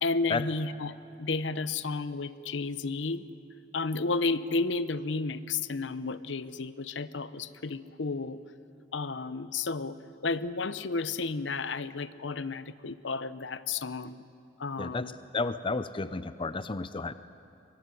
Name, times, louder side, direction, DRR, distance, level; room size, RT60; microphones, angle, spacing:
voice 1, 0.0-3.3 3.7-8.4 8.9-14.2 14.6-15.1, left 3 dB, 70° left, 14 dB, 0.8 m, -32 dB
voice 2, 14.8-17.1, left 3 dB, 30° left, 13 dB, 0.6 m, -32 dB
24.0 x 23.0 x 9.6 m, 2.7 s
head